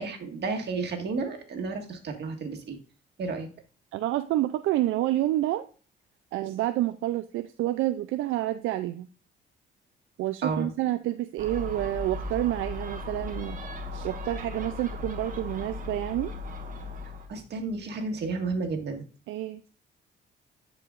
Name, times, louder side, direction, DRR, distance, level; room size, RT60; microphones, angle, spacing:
voice 1, 0.0-2.8 3.2-3.5 10.4-10.7 17.3-19.0, right 4 dB, 60° right, 3 dB, 1.8 m, -32 dB
voice 2, 3.9-5.7 6.3-9.1 10.2-13.6 13.9-16.3 19.3-19.6, right 14 dB, 85° right, 10 dB, 0.4 m, -28 dB
Gull seagull, 11.4-17.3, left 2 dB, 40° right, 1.3 m, -37 dB
10.5 x 4.9 x 2.5 m, 0.38 s
cardioid pair, 90°, 20 cm